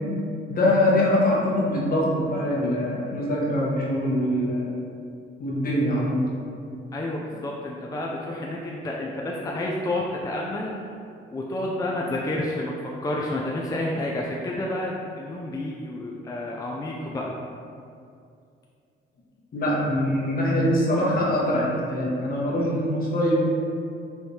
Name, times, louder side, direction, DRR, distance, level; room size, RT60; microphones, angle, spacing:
voice 1, 0.5-4.7 5.4-6.2 19.5-23.5, left 1 dB, 45° left, -5 dB, 1.2 m, -23 dB
voice 2, 6.9-10.7 11.3-17.3, left 1 dB, 20° left, -3 dB, 0.4 m, -30 dB
4.6 x 3.3 x 2.8 m, 2.4 s
cardioid pair, 90°, 20 cm